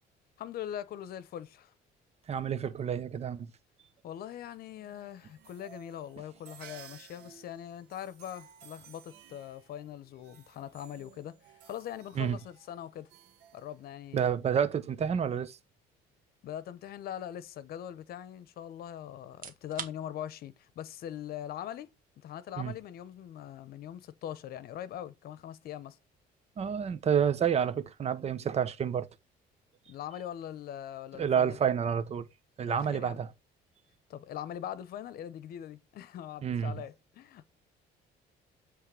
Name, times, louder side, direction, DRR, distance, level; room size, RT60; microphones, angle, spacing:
voice 1, 0.4-1.7 4.0-11.4 11.7-13.1 13.5-14.3 16.4-21.9 22.2-26.0 29.9-31.6 32.7-33.3 34.1-37.4, left 10 dB, 65° left, 0.8 m, -42 dB
voice 2, 2.3-3.5 12.2-12.4 14.1-15.6 22.6-22.7 26.6-29.1 31.2-32.3 32.6-33.3 36.4-36.7, right 8 dB, 40° right, 0.8 m, -29 dB
sound 1, 4.8-14.3, right 9 dB, 80° right, 1.2 m, -56 dB
sound 2, 19.3-34.1, right 8 dB, 55° right, 1.1 m, -54 dB
7.9 x 3.2 x 4.8 m
cardioid pair, 110°, 17 cm